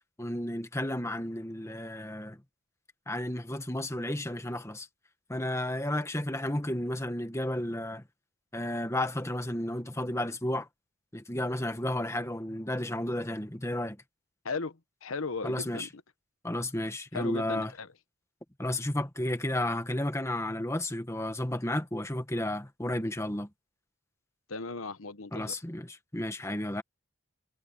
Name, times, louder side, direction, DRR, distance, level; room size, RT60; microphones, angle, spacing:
voice 1, 0.2-2.4 3.1-4.9 5.3-8.0 8.5-10.7 11.1-14.0 15.4-15.9 16.4-17.7 18.6-23.5 25.3-26.8, left 1 dB, 15° left, 1.7 m, -32 dB
voice 2, 14.4-15.9 17.1-17.9 24.5-25.6, left 4 dB, 85° left, 1.1 m, -37 dB
head